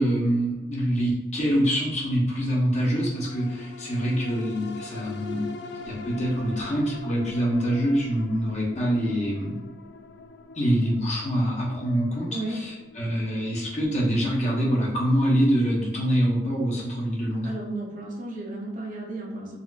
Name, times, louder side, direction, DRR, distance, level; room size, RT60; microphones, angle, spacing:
voice 1, 0.0-5.5 5.8-9.6 10.5-17.5, equal, 40° left, -4 dB, 1.0 m, -25 dB
sound 1, 3.0-17.6 18.1-18.2, left 4 dB, 70° left, 0.3 m, -43 dB
voice 2, 12.3-12.6 17.4-19.6, right 2 dB, 50° right, -1 dB, 0.7 m, -33 dB
4.1 x 2.5 x 2.4 m, 0.99 s
head